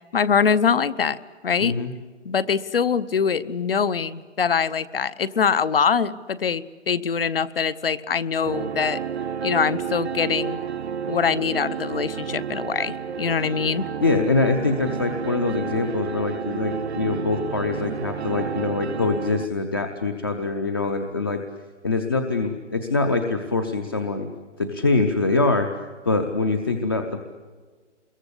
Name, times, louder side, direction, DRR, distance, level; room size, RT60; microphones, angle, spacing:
voice 1, 0.1-1.2 1.4-1.8 2.2-9.0 9.4-10.6 11.1-13.9, left 6 dB, 50° left, 17 dB, 0.9 m, -23 dB
voice 2, 1.6-1.9 14.0-21.4 21.8-24.3 24.6-25.7 26.1-27.2, left 3 dB, 20° left, 6 dB, 0.7 m, -24 dB
sound 1, 8.4-19.5, right 7 dB, 60° right, 0.9 m, -31 dB
25.5 x 22.0 x 8.2 m, 1.4 s
hypercardioid pair, 170°, 36 cm